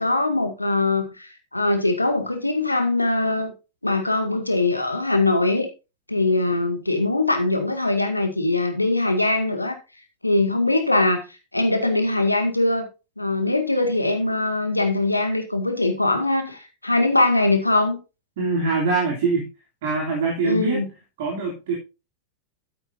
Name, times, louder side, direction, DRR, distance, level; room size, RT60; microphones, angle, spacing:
voice 1, 0.0-3.5 3.8-5.7 6.1-9.8 10.2-11.2 11.5-12.9 13.2-18.0 20.4-20.9, left 2 dB, 85° left, 1.9 m, -22 dB
voice 2, 18.4-19.5 19.8-20.8 21.2-21.7, right 4 dB, 55° right, 3.3 m, -23 dB
12.0 x 9.1 x 2.7 m
figure-of-eight pair, 90°, 0 cm